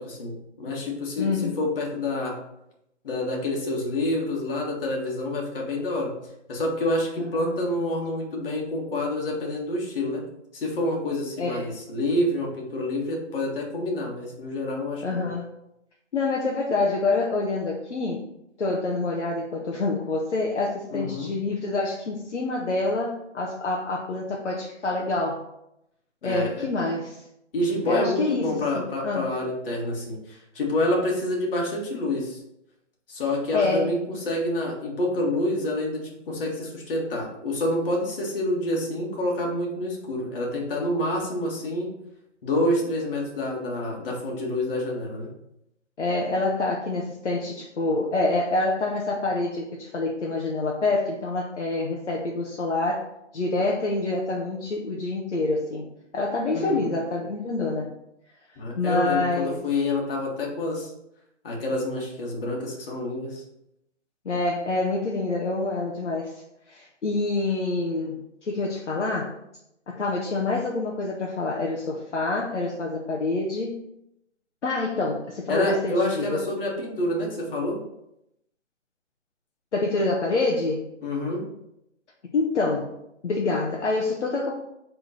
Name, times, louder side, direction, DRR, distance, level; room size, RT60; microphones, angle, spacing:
voice 1, 0.0-2.4 3.0-6.1 6.5-10.2 10.5-15.3 20.9-21.3 26.2-26.7 27.5-32.4 33.1-41.9 42.4-45.3 56.5-56.9 58.6-60.9 61.4-63.4 75.5-77.8 81.0-81.5, left 1 dB, 50° left, -1 dB, 1.9 m, -27 dB
voice 2, 1.2-1.6 7.4-7.8 11.4-11.7 15.0-15.5 16.1-18.2 18.6-25.4 26.2-27.2 27.9-29.3 33.5-33.9 46.0-53.1 53.3-55.9 56.1-57.9 58.8-59.6 64.2-66.3 66.7-69.4 69.9-73.8 74.6-76.4 79.7-80.9 82.3-82.9 83.2-84.5, left 3 dB, 65° left, -2 dB, 1.1 m, -27 dB
5.0 x 3.8 x 5.6 m, 0.81 s
hypercardioid pair, 150°, 37 cm